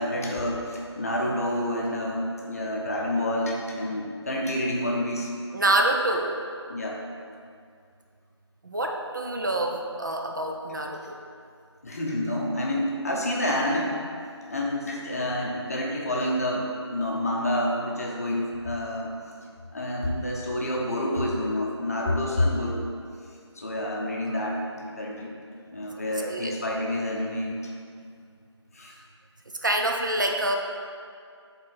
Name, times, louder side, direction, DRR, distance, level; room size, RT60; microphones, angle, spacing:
voice 1, 0.0-5.3 6.7-7.0 11.8-14.0 14.5-19.1 19.7-22.9 23.5-25.3 25.7-27.7 28.7-28.9, left 1 dB, 35° left, -2 dB, 0.7 m, -28 dB
voice 2, 5.5-6.4 8.6-11.1 26.2-26.5 29.6-30.5, right 1 dB, 45° right, 2 dB, 0.4 m, -26 dB
6.2 x 3.8 x 4.0 m, 2.3 s
figure-of-eight pair, 165°, 15 cm